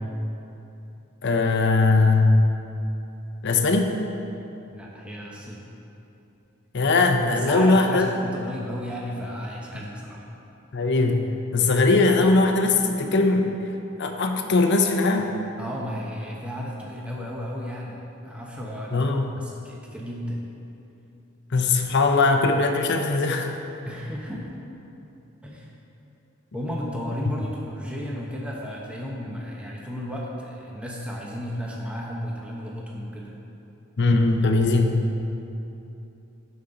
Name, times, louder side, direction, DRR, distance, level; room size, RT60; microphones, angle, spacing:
voice 1, 1.2-2.4 3.4-3.9 6.7-8.1 10.7-13.5 14.0-15.3 18.9-19.2 21.5-23.5 27.3-27.4 34.0-35.1, left 3 dB, 55° left, 4 dB, 0.7 m, -20 dB
voice 2, 4.7-5.7 7.3-10.2 15.6-20.4 23.8-24.5 25.4-25.7 26.5-33.3, equal, 5° right, -3 dB, 0.9 m, -33 dB
14.0 x 5.4 x 3.9 m, 2.9 s
head